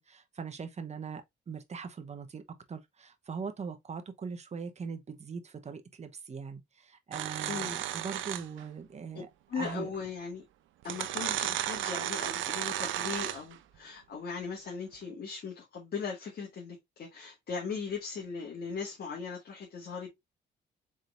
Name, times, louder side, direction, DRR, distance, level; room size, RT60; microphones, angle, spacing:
voice 1, 0.0-2.4 2.7-9.3 9.5-9.9, right 5 dB, 35° right, 0.9 m, -41 dB
sound 1, 7.1-8.6 9.9-10.0 10.8-13.6, right 12 dB, 80° right, 0.5 m, -34 dB
voice 2, 9.5-10.4 10.8-20.1, left 5 dB, 55° left, 1.8 m, -38 dB
4.4 x 3.6 x 2.5 m
cardioid pair, 90°, 20 cm